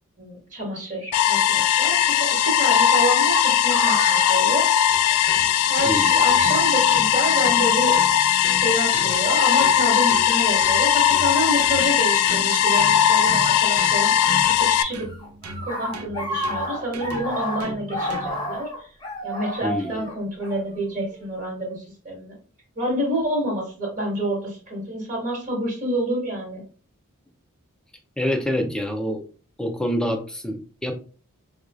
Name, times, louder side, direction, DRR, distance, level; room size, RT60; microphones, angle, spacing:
voice 1, 0.2-4.7 5.7-8.0 8.5-15.1 15.6-18.9 19.2-22.4 22.7-26.6, right 1 dB, 35° right, -2 dB, 1.6 m, -28 dB
sound 1, 1.1-14.8, left 9 dB, 90° left, 0.3 m, -19 dB
sound 2, 3.3-5.4 5.7-5.8 6.7-7.0 8.0-8.2 9.0-9.5 12.1-12.2 13.5-14.4 14.7-21.3, left 1 dB, 20° left, 0.9 m, -31 dB
sound 3, 4.9-18.6, right 2 dB, 80° right, 0.6 m, -38 dB
voice 2, 5.8-6.2 19.6-20.1 28.2-29.2 29.6-30.9, equal, 5° left, 3 dB, 0.5 m, -26 dB
4.5 x 2.4 x 2.4 m, 0.38 s
head